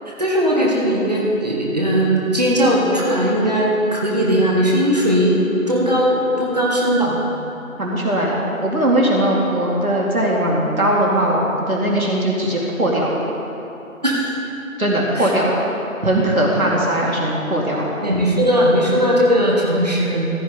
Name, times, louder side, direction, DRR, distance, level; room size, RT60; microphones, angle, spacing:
voice 1, 0.2-7.2 14.0-14.3 15.2-15.3 18.0-20.3, equal, 30° right, -4 dB, 1.2 m, -18 dB
voice 2, 7.8-8.4 8.6-13.1 14.8-15.5 16.0-17.9, right 1 dB, 80° right, -3 dB, 2.3 m, -19 dB
15.0 x 9.7 x 3.7 m, 3.0 s
figure-of-eight pair, 170°, 42 cm